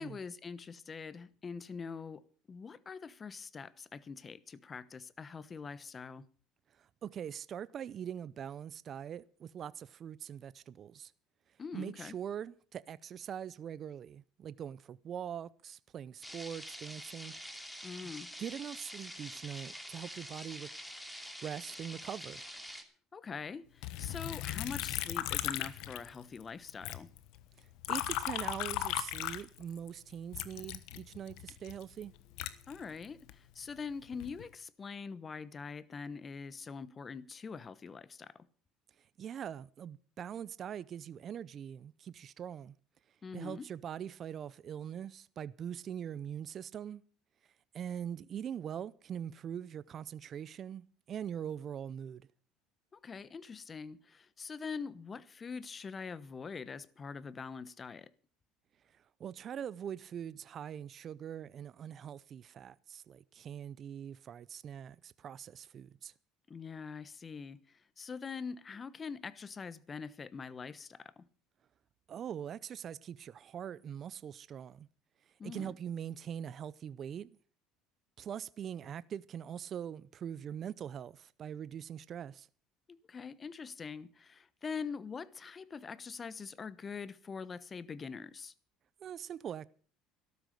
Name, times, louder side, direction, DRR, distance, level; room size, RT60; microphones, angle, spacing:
voice 1, 0.0-6.3 11.6-12.1 17.8-18.3 23.1-27.1 32.7-38.5 43.2-43.7 52.9-58.1 66.5-71.2 75.4-75.7 82.9-88.5, left 5 dB, 30° left, 1.0 m, -44 dB
voice 2, 6.8-11.1 11.7-17.3 18.0-18.1 18.4-20.7 21.4-22.4 27.6-32.1 39.2-42.7 43.3-47.0 47.7-52.3 58.9-66.1 72.1-74.9 75.4-77.3 78.2-82.5 89.0-89.7, right 9 dB, 45° right, 0.6 m, -42 dB
sound 1, 16.2-22.8, equal, 5° left, 2.7 m, -46 dB
Liquid, 23.8-26.4 26.7-29.9 30.3-33.4 33.9-34.5, left 15 dB, 75° left, 1.2 m, -37 dB
13.0 x 12.5 x 6.5 m
supercardioid pair, 85°, 0 cm